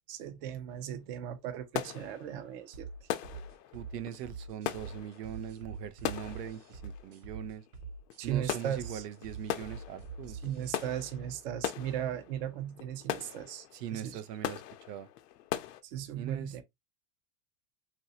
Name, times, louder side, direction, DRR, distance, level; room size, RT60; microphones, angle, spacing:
voice 1, 0.1-2.9 8.2-9.0 10.4-13.7 13.9-14.2 15.8-16.6, right 10 dB, 40° right, 0.4 m, -37 dB
sound 1, 0.7-0.9 1.2-15.8, left 12 dB, 90° left, 0.6 m, -40 dB
sound 2, 2.7-10.7, right 3 dB, 70° right, 1.0 m, -45 dB
voice 2, 3.7-7.6 8.2-10.4 13.7-14.6 14.9-15.1 16.1-16.6, right 10 dB, 90° right, 0.7 m, -41 dB
3.1 x 2.6 x 2.6 m
supercardioid pair, 165°, 46 cm